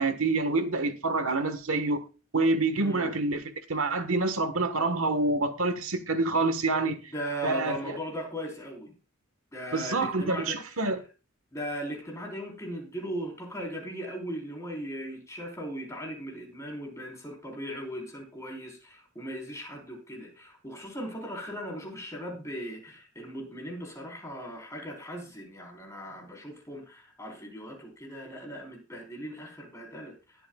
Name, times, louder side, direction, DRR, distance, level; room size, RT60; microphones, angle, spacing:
voice 1, 0.0-2.0 2.3-3.4 3.7-7.1 7.4-8.0 9.7-11.0, right 3 dB, 80° right, 1.4 m, -27 dB
voice 2, 2.8-3.2 7.1-8.9 9.5-10.6 11.5-30.1, equal, 15° left, 4.0 m, -38 dB
20.0 x 7.9 x 2.4 m
head